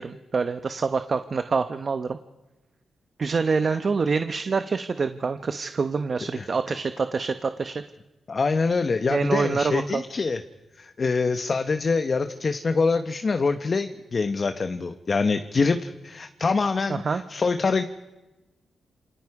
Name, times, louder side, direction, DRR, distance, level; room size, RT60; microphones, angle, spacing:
voice 1, 0.0-2.2 3.2-7.8 9.1-10.0 16.9-17.2, right 4 dB, 45° right, 9 dB, 0.9 m, -26 dB
voice 2, 8.3-10.4 10.8-17.8, left 4 dB, 40° left, 9 dB, 1.0 m, -25 dB
28.5 x 28.0 x 4.8 m, 1.1 s
cardioid pair, 100°, 0 cm